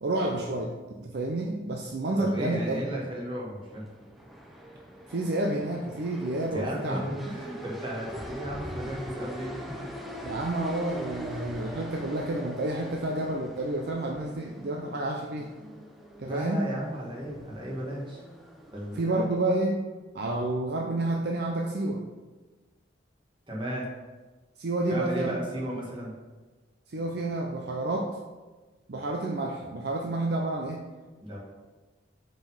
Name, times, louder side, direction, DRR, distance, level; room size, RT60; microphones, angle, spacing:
voice 1, 0.0-2.8 5.1-7.0 10.2-15.5 16.2-16.7 18.9-19.8 20.1-22.0 24.6-25.4 26.9-28.2 28.9-30.8, right 2 dB, 55° right, 1 dB, 0.5 m, -29 dB
voice 2, 2.2-3.8 6.5-9.8 16.2-18.2 18.7-19.2 23.5-23.9 24.9-26.1 31.2-31.4, equal, 25° right, -4 dB, 1.3 m, -34 dB
sound 1, 3.6-19.5, right 1 dB, ahead, 0.5 m, -42 dB
5.1 x 3.8 x 5.4 m, 1.3 s
head